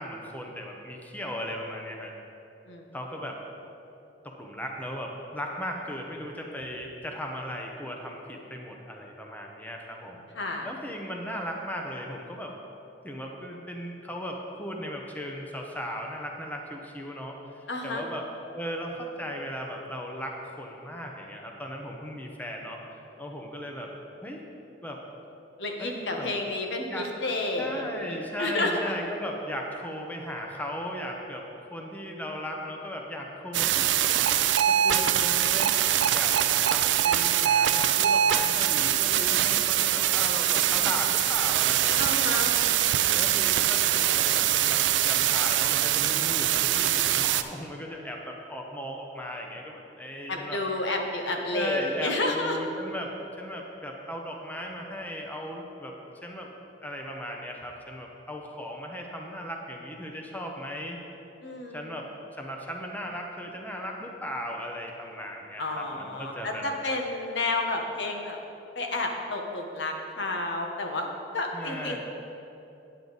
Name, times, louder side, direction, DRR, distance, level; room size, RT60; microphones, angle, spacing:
voice 1, 0.0-2.1 2.9-3.4 4.2-10.2 10.6-12.6 13.0-22.8 23.2-23.9 24.2-24.4 24.8-25.1 25.8-26.3 26.9-27.1 27.6-34.4 34.7-42.2 43.1-50.6 51.5-55.9 56.2-56.5 56.8-61.0 61.7-66.7 71.5-72.0, equal, 10° left, 1 dB, 0.8 m, -37 dB
voice 2, 10.4-10.7 17.7-18.0 25.6-28.8 42.0-43.2 50.3-52.6 61.4-61.8 65.6-68.4 68.7-71.1 71.3-72.0, left 2 dB, 70° left, 2 dB, 1.0 m, -31 dB
sound 1, 33.5-47.4, right 11 dB, 75° right, 0.4 m, -23 dB
9.6 x 8.9 x 4.0 m, 2.9 s
head